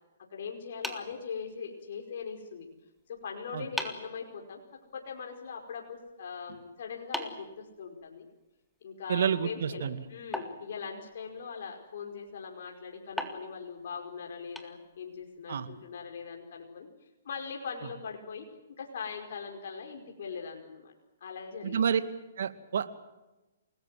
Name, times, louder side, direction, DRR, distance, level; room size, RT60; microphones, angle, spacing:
voice 1, 0.3-2.7 3.1-4.6 4.9-8.3 8.8-18.5 18.8-20.9 21.2-21.8, left 6 dB, 60° left, 2 dB, 5.1 m, -41 dB
sound 1, 0.8-1.9 3.2-3.3 3.8-4.2 7.1-8.3 10.3-11.4 13.2-15.2, left 1 dB, ahead, 2.1 m, -40 dB
voice 2, 9.1-10.0 15.5-15.7 21.6-22.0 22.4-23.0, right 8 dB, 65° right, 11 dB, 2.3 m, -29 dB
29.0 x 20.0 x 7.7 m, 1.0 s
hypercardioid pair, 150°, 0 cm